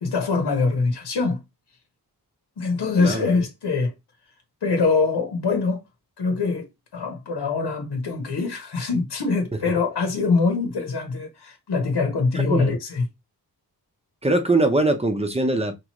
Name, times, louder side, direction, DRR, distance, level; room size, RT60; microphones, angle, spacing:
voice 1, 0.0-1.4 2.6-3.9 4.6-5.8 6.2-13.0, left 4 dB, 80° left, 1.1 m, -23 dB
voice 2, 3.0-3.3 12.3-12.7 14.2-15.8, right 2 dB, 15° right, 0.7 m, -22 dB
5.0 x 3.0 x 3.0 m
wide cardioid pair, 155°, 40 cm